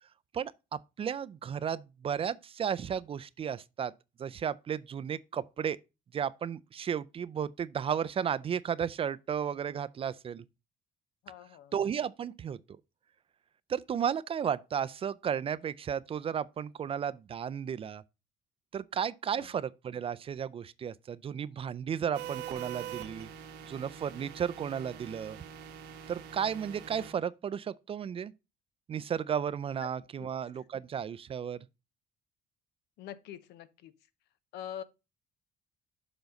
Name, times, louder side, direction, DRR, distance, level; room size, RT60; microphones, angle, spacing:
voice 1, 0.3-3.9 4.2-5.8 6.1-10.4 11.7-12.6 13.7-18.0 18.7-23.3 23.7-25.4 26.1-28.3 28.9-31.6, right 8 dB, 35° right, 0.4 m, -34 dB
voice 2, 11.2-11.7 19.3-19.5 29.8-29.9 30.2-30.3 33.0-33.9 34.5-34.8, left 10 dB, 80° left, 0.7 m, -44 dB
sound 1, 22.1-27.1, right 9 dB, 80° right, 1.1 m, -44 dB
7.0 x 3.9 x 5.1 m
cardioid pair, 110°, 17 cm